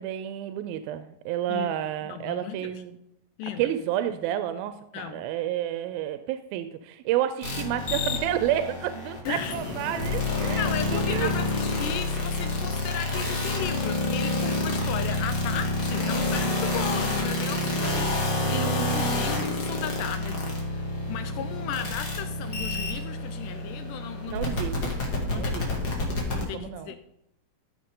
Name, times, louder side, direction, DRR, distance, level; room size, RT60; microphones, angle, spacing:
voice 1, 0.0-3.0 3.6-11.3 18.5-19.4 24.2-24.9 25.3-25.7 26.4-26.9, right 11 dB, 90° right, 10 dB, 2.4 m, -30 dB
voice 2, 2.0-2.8 3.4-3.7 4.9-5.2 9.3-9.5 10.6-24.6 25.3-25.9 26.3-27.0, left 9 dB, 80° left, 10 dB, 2.0 m, -36 dB
sound 1, 7.4-26.4, left 2 dB, 40° left, 2.0 m, -28 dB
13.5 x 6.4 x 3.7 m, 0.84 s
omnidirectional pair, 4.1 m